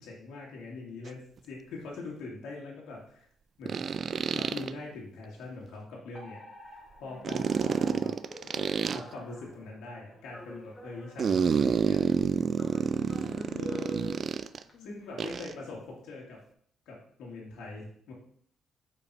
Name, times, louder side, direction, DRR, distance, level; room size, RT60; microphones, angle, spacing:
voice 1, 0.0-3.3 3.6-3.8 4.1-8.1 8.4-12.0 13.6-14.3 14.8-16.4 16.9-18.1, left 3 dB, 85° left, -3 dB, 1.8 m, -43 dB
sound 1, 1.1-1.2 3.7-4.7 7.2-9.0 11.2-14.6 15.2-15.5, right 6 dB, 50° right, 0.3 m, -28 dB
Alarm, 6.1-14.7, left 1 dB, 20° left, 2.4 m, -51 dB
voice 2, 12.8-13.8 14.7-15.2, left 5 dB, 60° left, 2 dB, 0.7 m, -47 dB
5.4 x 4.6 x 4.6 m, 0.62 s
cardioid pair, 90°, 0 cm